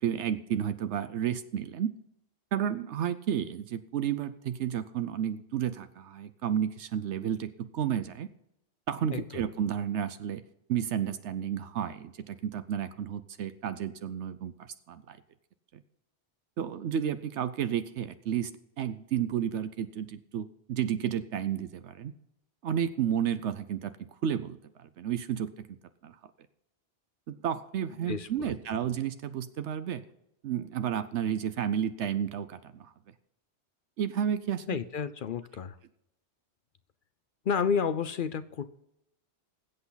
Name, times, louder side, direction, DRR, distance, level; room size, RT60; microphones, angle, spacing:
voice 1, 0.0-1.9 2.5-8.3 8.9-10.4 10.7-15.2 16.6-18.5 18.8-22.1 22.6-25.7 26.0-26.1 27.3-30.0 30.4-32.9 34.0-34.6, right 9 dB, 75° right, 11 dB, 1.0 m, -32 dB
voice 2, 9.1-9.4 28.1-28.5 34.7-35.8 37.5-38.8, left 6 dB, 55° left, 13 dB, 0.7 m, -31 dB
20.0 x 8.3 x 4.0 m, 0.82 s
omnidirectional pair, 1.2 m